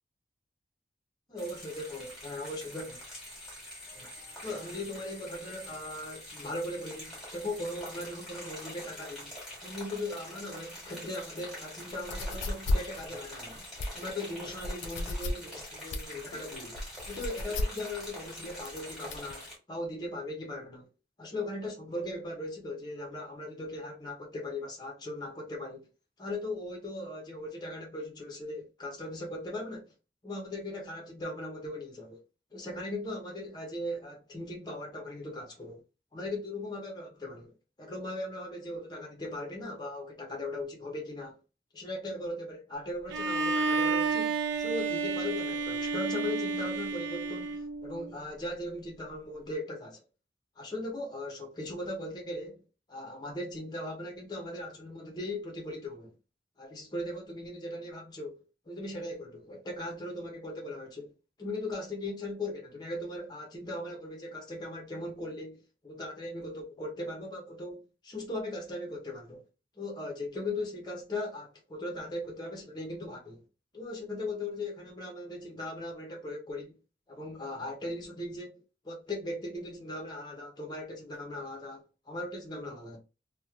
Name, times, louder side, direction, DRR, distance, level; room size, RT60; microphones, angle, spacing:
voice 1, 1.3-3.0 3.9-4.1 4.4-9.4 9.6-13.6 13.9-16.8 17.1-20.9 21.2-25.9 26.2-29.9 30.2-32.2 32.5-35.8 36.1-41.4 41.7-50.0 50.6-52.6 52.9-56.1 56.6-61.1 61.4-69.4 69.8-73.4 73.7-76.8 77.1-83.0, left 1 dB, 20° left, 0.6 m, -39 dB
sound 1, 1.4-19.6, left 1 dB, ahead, 1.3 m, -45 dB
sound 2, 11.9-19.3, left 1 dB, 85° left, 0.4 m, -34 dB
Bowed string instrument, 43.1-48.1, right 4 dB, 85° right, 0.4 m, -31 dB
2.9 x 2.1 x 2.3 m
head